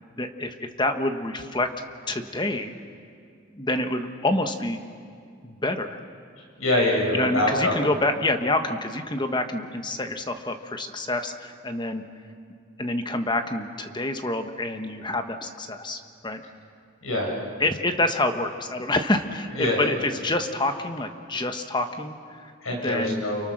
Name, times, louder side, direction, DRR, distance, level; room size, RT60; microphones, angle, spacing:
voice 1, 0.2-1.7 2.1-2.7 3.5-4.8 5.4-6.0 7.1-12.0 12.8-16.4 17.6-23.2, left 2 dB, 20° left, 7 dB, 1.3 m, -27 dB
voice 2, 6.6-7.7 17.0-17.3 19.5-19.9 22.6-23.5, left 1 dB, 80° left, -1 dB, 6.3 m, -24 dB
30.0 x 28.5 x 6.5 m, 2.3 s
head